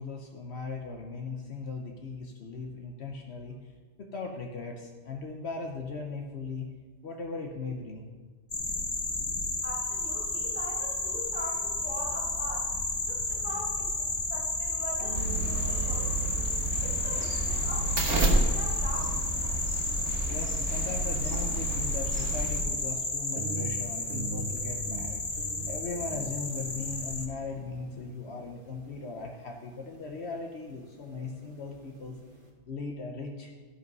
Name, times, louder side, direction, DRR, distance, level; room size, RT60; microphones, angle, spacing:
voice 1, 0.0-3.5 4.0-6.7 7.0-8.1 20.3-32.2 32.7-33.5, left 4 dB, 70° left, 2 dB, 1.1 m, -38 dB
sound 1, 8.5-27.3, left 2 dB, 35° left, 1.1 m, -32 dB
voice 2, 9.6-12.7 13.1-13.9 14.3-16.3 16.8-19.2, equal, 10° left, -4 dB, 2.4 m, -42 dB
sound 2, 12.6-32.5, right 3 dB, 50° right, 1.6 m, -46 dB
sound 3, 15.1-22.6, right 2 dB, 85° right, 1.6 m, -30 dB
13.5 x 5.3 x 5.4 m, 1.4 s
omnidirectional pair, 1.2 m